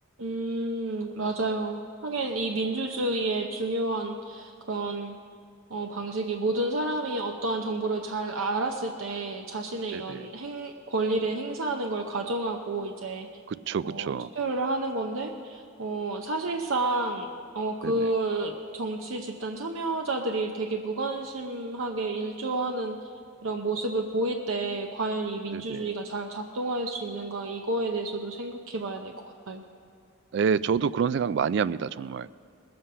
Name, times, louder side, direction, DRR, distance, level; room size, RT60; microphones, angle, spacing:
voice 1, 0.2-5.1 5.7-13.3 13.8-17.3 17.5-23.0 23.4-29.1 29.5-29.7, right 2 dB, 80° right, 4 dB, 0.7 m, -30 dB
voice 2, 9.9-10.3 13.5-14.3 17.8-17.9 25.5-25.9 30.3-32.3, right 6 dB, 60° right, 17 dB, 0.3 m, -28 dB
20.0 x 7.8 x 5.5 m, 2.3 s
head